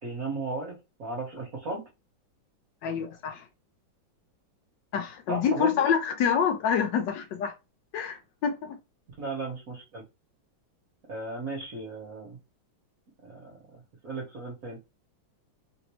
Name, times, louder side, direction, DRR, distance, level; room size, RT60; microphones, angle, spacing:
voice 1, 0.0-1.9 5.3-5.9 9.2-10.0 11.1-12.4 13.2-13.6 14.0-14.8, right 3 dB, 50° right, 1.3 m, -35 dB
voice 2, 2.8-3.4 4.9-7.5 7.9-8.8, left 7 dB, 75° left, 1.1 m, -27 dB
3.3 x 2.6 x 3.0 m
omnidirectional pair, 2.2 m